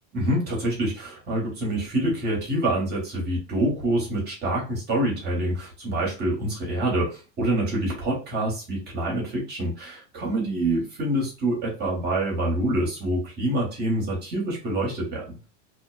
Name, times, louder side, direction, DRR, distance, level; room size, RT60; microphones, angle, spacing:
voice 1, 0.1-15.2, right 1 dB, 25° right, -2 dB, 1.0 m, -26 dB
2.5 x 2.1 x 2.3 m, 0.32 s
supercardioid pair, 150°, 37 cm